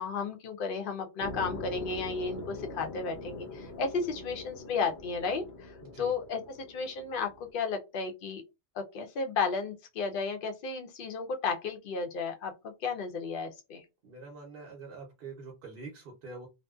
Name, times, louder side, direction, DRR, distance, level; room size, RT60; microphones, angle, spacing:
voice 1, 0.0-6.4 6.7-8.4 8.7-13.8, left 5 dB, 60° left, 0.7 m, -33 dB
sound 1, 1.2-7.5, left 2 dB, 85° left, 1.0 m, -43 dB
voice 2, 5.8-6.1 14.0-16.5, right 3 dB, 60° right, 0.8 m, -45 dB
2.6 x 2.1 x 2.2 m
omnidirectional pair, 1.1 m